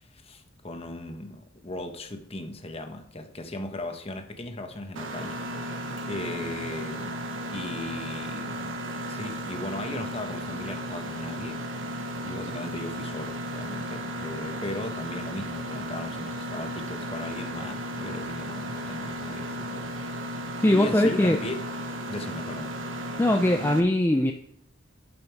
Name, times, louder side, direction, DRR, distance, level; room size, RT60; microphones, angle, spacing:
voice 1, 0.0-5.8 6.1-7.2 7.5-21.6 22.1-22.8, left 2 dB, 30° left, 1.0 m, -38 dB
Mechanisms, 5.0-23.8, equal, 80° right, 1.1 m, -35 dB
voice 2, 20.6-21.4 23.2-24.3, left 1 dB, 10° left, 0.5 m, -21 dB
12.0 x 5.7 x 4.7 m
head